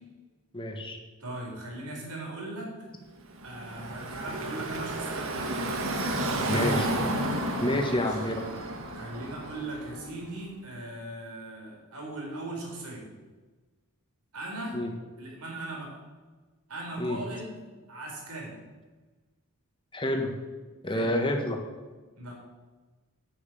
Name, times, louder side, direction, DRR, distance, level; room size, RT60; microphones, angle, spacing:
voice 1, 0.5-1.0 6.5-6.9 7.6-8.4 14.7-14.9 17.0-17.2 19.9-20.3 20.8-21.6, left 1 dB, 20° left, 2 dB, 1.6 m, -28 dB
voice 2, 1.2-2.7 3.4-5.8 6.3-6.7 7.8-8.2 8.9-13.1 14.3-14.8 15.2-16.0 16.7-17.6 17.9-18.5 20.8-21.1 22.1-22.3, right 2 dB, 75° right, -2 dB, 4.4 m, -39 dB
Car passing by / Traffic noise roadway noise, 3.3-10.2, right 1 dB, 60° right, 1.6 m, -32 dB
8.7 x 7.9 x 9.1 m, 1.3 s
head